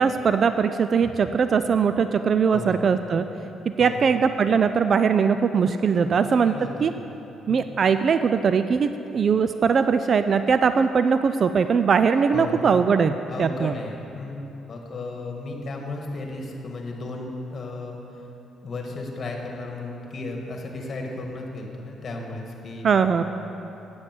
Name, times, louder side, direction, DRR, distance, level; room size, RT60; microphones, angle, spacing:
voice 1, 0.0-3.2 3.8-6.5 6.8-6.9 7.5-13.7 22.8-23.2, right 6 dB, 50° right, 10 dB, 0.3 m, -21 dB
voice 2, 2.5-2.8 3.8-4.0 6.5-6.9 7.5-7.6 12.3-12.6 13.3-14.4 14.7-17.9 18.6-23.2, left 2 dB, 45° left, 1 dB, 1.6 m, -34 dB
8.9 x 7.8 x 6.0 m, 3.0 s
cardioid pair, 90°, 0 cm